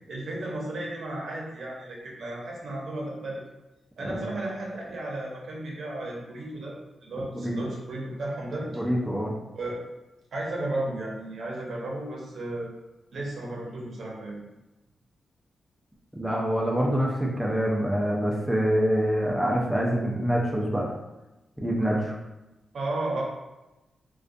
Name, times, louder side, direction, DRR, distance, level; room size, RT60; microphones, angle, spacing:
voice 1, 0.1-3.4 4.0-6.8 7.0-8.8 9.5-9.8 10.3-12.7 13.1-14.4 22.7-23.2, right 2 dB, 65° right, -3 dB, 0.6 m, -34 dB
voice 2, 4.0-4.4 7.3-7.6 8.7-9.3 16.2-20.9 21.6-22.2, equal, 5° right, -3 dB, 0.4 m, -25 dB
2.3 x 2.2 x 2.5 m, 1.0 s
wide cardioid pair, 105°, 0 cm